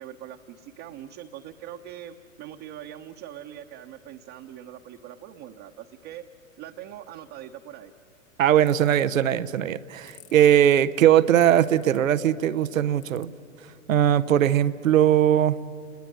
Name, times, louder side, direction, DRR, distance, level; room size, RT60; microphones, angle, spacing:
voice 1, 0.0-6.2 6.6-7.9, right 11 dB, 35° right, 1 dB, 1.1 m, -42 dB
voice 2, 8.4-13.3 13.9-15.6, right 10 dB, 70° right, 14 dB, 0.8 m, -20 dB
sound 1, 8.7-9.0 10.1-10.4 11.5-12.0 13.0-13.2, left 12 dB, 55° left, 1.9 m, -51 dB
29.5 x 20.0 x 9.9 m, 2.5 s
figure-of-eight pair, 100°, 41 cm